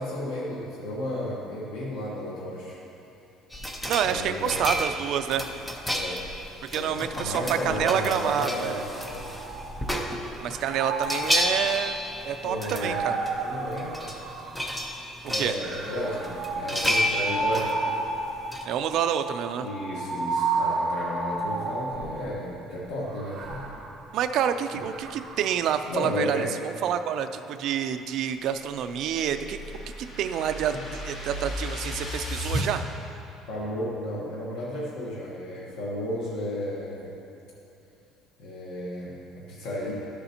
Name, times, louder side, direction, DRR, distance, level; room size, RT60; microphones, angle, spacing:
voice 1, 0.0-2.8 4.0-4.6 5.9-6.2 6.7-9.3 12.4-13.1 13.4-14.2 15.3-17.8 19.6-23.7 24.7-24.8 25.9-26.5 30.7-30.8 33.5-37.1 38.4-39.9, left 1 dB, 85° left, -5 dB, 1.2 m, -33 dB
sound 1, 3.5-10.6 10.9-13.0 13.2-13.3 13.7-14.2 14.5-15.9 16.2-18.6, equal, 5° left, 0.5 m, -31 dB
voice 2, 3.9-5.5 6.7-8.8 10.4-12.0 12.2-13.2 15.3-15.6 18.7-19.7 24.1-29.6 30.0-32.8, right 9 dB, 50° right, 8 dB, 0.3 m, -28 dB
sound 2, 9.0-10.1 10.5-14.9 15.6-22.3 23.0-25.6, right 3 dB, 35° right, 1.1 m, -32 dB
sound 3, 28.6-32.7, equal, 35° left, 1.2 m, -34 dB
12.5 x 6.8 x 2.8 m, 2.9 s
cardioid pair, 175°, 0 cm